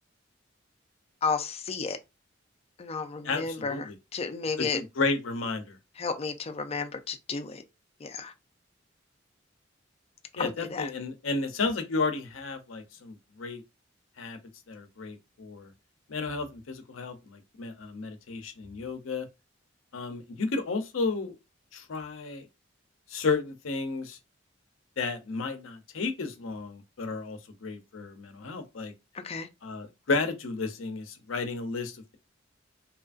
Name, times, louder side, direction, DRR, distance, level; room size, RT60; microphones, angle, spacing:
voice 1, 1.2-2.0 2.8-4.8 6.0-7.6 8.0-8.3 10.4-10.9 29.2-29.5, left 5 dB, 30° left, 0.4 m, -32 dB
voice 2, 3.2-3.9 4.6-5.8 10.4-13.6 14.2-14.4 14.7-15.7 16.1-19.3 19.9-21.4 21.7-22.4 23.1-24.2 25.0-28.9 29.6-32.2, left 3 dB, 90° left, 0.6 m, -32 dB
2.8 x 2.5 x 2.4 m
head